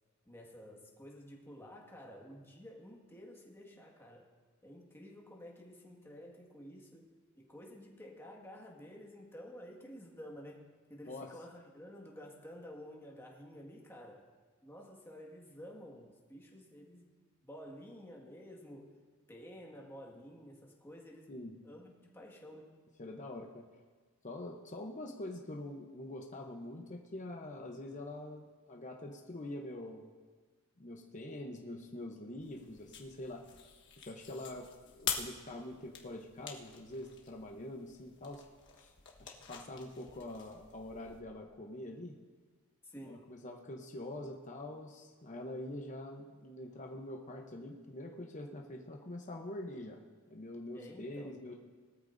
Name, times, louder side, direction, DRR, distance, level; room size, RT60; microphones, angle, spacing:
voice 1, 0.2-4.3 4.6-14.3 14.6-17.1 17.4-19.0 19.3-21.3 21.6-22.8 42.8-43.3 50.7-51.4, equal, 10° left, -2 dB, 1.8 m, -51 dB
voice 2, 23.0-23.6 24.2-30.1 30.8-33.5 34.1-38.4 38.8-38.9 39.2-42.2 43.0-50.0 50.3-51.5, left 1 dB, 35° left, 1 dB, 0.9 m, -45 dB
sound 1, 32.4-41.2, left 7 dB, 60° left, 1.4 m, -46 dB
19.5 x 13.5 x 2.7 m, 1.5 s
head